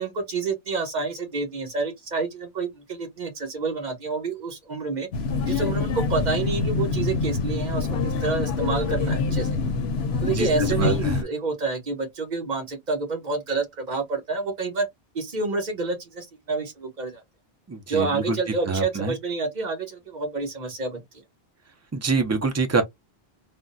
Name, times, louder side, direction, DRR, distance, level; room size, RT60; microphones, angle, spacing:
voice 1, 0.0-5.1 5.5-9.5 10.2-14.9 15.1-17.2 17.9-21.0, right 4 dB, 45° right, 1.0 m, -28 dB
sound 1, 5.1-11.2, left 4 dB, 80° left, 0.8 m, -25 dB
voice 2, 10.3-11.2 17.7-18.4 18.7-19.1 21.9-22.8, right 4 dB, 25° right, 0.3 m, -25 dB
3.4 x 2.1 x 2.5 m
omnidirectional pair, 1.1 m